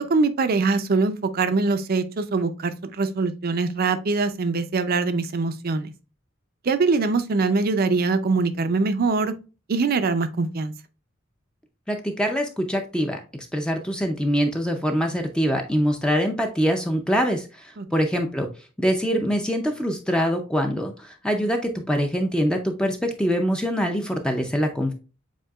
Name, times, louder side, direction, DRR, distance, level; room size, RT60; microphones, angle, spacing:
voice 1, 0.0-5.9 6.7-9.3 9.7-10.7 17.8-17.9, right 4 dB, 50° right, 0.5 m, -23 dB
voice 2, 11.9-13.2 13.5-17.5 17.9-18.5 18.8-24.9, equal, 5° left, 0.5 m, -24 dB
7.3 x 2.8 x 2.3 m
head